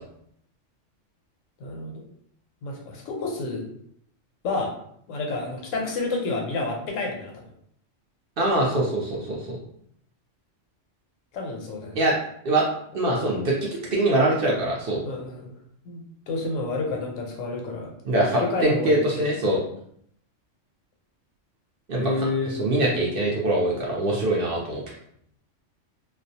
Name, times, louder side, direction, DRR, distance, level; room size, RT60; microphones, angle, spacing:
voice 1, 1.6-2.0 2.6-3.6 4.4-4.7 5.1-7.4 11.3-12.0 15.0-15.5 15.8-19.3 22.0-23.1, left 3 dB, 90° left, 1 dB, 1.0 m, -30 dB
voice 2, 8.4-9.6 12.0-12.1 12.4-12.7 12.9-15.0 18.0-19.6 21.9-22.1 22.5-24.8, right 1 dB, 60° right, -3 dB, 0.6 m, -23 dB
2.3 x 2.1 x 2.6 m, 0.68 s
omnidirectional pair, 1.3 m